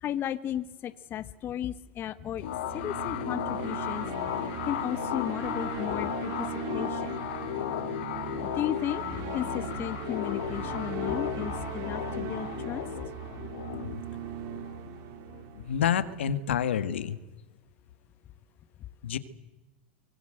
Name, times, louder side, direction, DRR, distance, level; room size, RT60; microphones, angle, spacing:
voice 1, 0.0-2.4 2.7-4.1 4.7-6.5 6.7-7.3 8.6-12.8, left 10 dB, 35° left, 14 dB, 1.3 m, -34 dB
sound 1, 2.2-16.4, right 11 dB, 55° right, 2.2 m, -39 dB
sound 2, 2.4-15.6, left 13 dB, 75° left, 1.8 m, -35 dB
voice 2, 15.6-17.2 19.0-19.2, left 9 dB, 90° left, 13 dB, 1.8 m, -28 dB
24.5 x 22.5 x 7.9 m, 1.1 s
hypercardioid pair, 115°, 6 cm